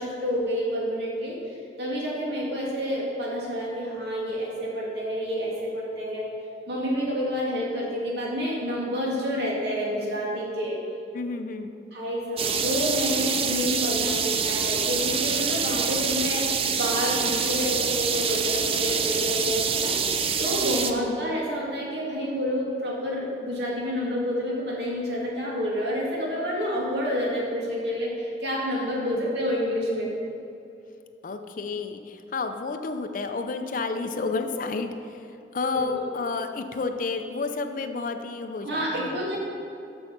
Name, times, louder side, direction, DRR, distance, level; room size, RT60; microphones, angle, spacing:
voice 1, 0.0-6.3 6.7-10.8 11.9-16.5 16.8-20.0 20.4-30.1 35.7-36.0 38.6-39.4, equal, 70° right, -4 dB, 2.2 m, -29 dB
voice 2, 11.1-11.7 20.8-21.2 29.0-29.3 31.2-39.2, left 4 dB, 50° left, 6 dB, 0.5 m, -31 dB
sound 1, 12.4-20.9, right 6 dB, 35° right, 0.5 m, -26 dB
7.0 x 6.5 x 5.9 m, 2.6 s
head